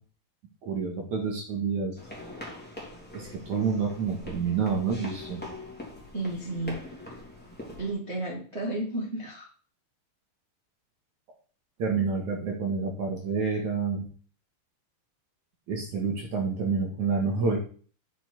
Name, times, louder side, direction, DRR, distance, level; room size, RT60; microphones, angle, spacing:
voice 1, 0.6-2.0 3.1-5.4 11.8-14.1 15.7-17.6, right 5 dB, 55° right, 0 dB, 2.3 m, -28 dB
sound 1, 2.0-7.9, left 1 dB, 5° left, 2.1 m, -43 dB
voice 2, 6.1-6.8 7.8-9.5, right 2 dB, 80° right, -3 dB, 0.6 m, -32 dB
7.5 x 7.4 x 4.5 m, 0.42 s
omnidirectional pair, 5.5 m